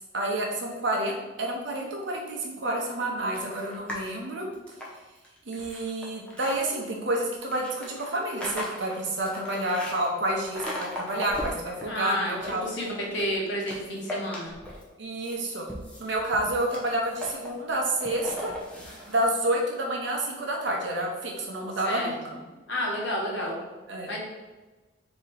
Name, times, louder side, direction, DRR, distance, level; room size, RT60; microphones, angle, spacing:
voice 1, 0.0-4.5 5.5-12.6 15.0-15.7 16.0-18.5 19.1-22.2 23.3-23.5 23.9-24.2, right 1 dB, 65° right, 0 dB, 0.8 m, -29 dB
sound 1, 3.3-4.1 4.5-6.6 7.4-10.0 10.5-11.8 12.2-13.3 13.7-14.9 15.2-19.2, left 1 dB, 5° left, 0.7 m, -37 dB
voice 2, 11.9-12.3 12.6-14.5 21.8-22.1 22.7-23.6 24.1-24.2, equal, 60° left, -2 dB, 1.1 m, -30 dB
4.1 x 3.0 x 4.0 m, 1.2 s
head